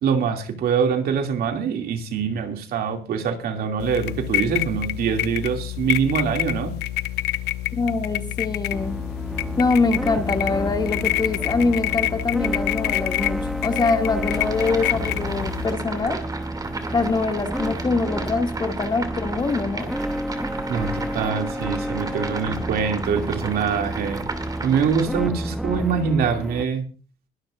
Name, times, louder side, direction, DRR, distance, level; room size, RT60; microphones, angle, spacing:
voice 1, 0.0-6.7 20.7-24.2 24.6-26.8, right 6 dB, 65° right, 4 dB, 2.6 m, -24 dB
sound 1, 3.8-15.7, left 15 dB, 80° left, 0.8 m, -27 dB
voice 2, 7.7-9.0 9.6-16.2 16.9-19.9, left 3 dB, 25° left, 4 dB, 2.4 m, -24 dB
sound 2, 8.7-26.6, right 1 dB, ahead, 0.7 m, -31 dB
sound 3, 14.3-25.0, right 3 dB, 20° right, 2.7 m, -34 dB
22.0 x 11.5 x 2.6 m, 0.37 s
cardioid pair, 110°, 17 cm